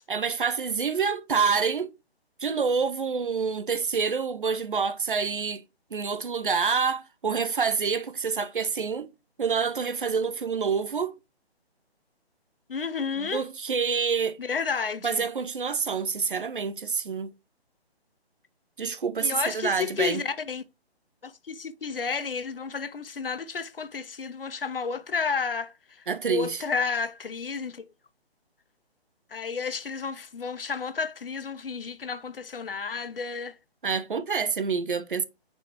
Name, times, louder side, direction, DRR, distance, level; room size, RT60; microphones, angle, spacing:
voice 1, 0.1-1.9 2.4-5.6 5.9-9.1 9.4-11.1 13.2-14.4 15.0-17.3 18.8-20.2 26.1-26.6 33.8-35.2, right 5 dB, 55° right, 0.7 m, -27 dB
voice 2, 12.7-13.4 14.4-15.2 19.2-20.6 21.2-27.8 29.3-33.6, left 5 dB, 60° left, 0.7 m, -31 dB
8.0 x 4.5 x 2.9 m
figure-of-eight pair, 145°, 32 cm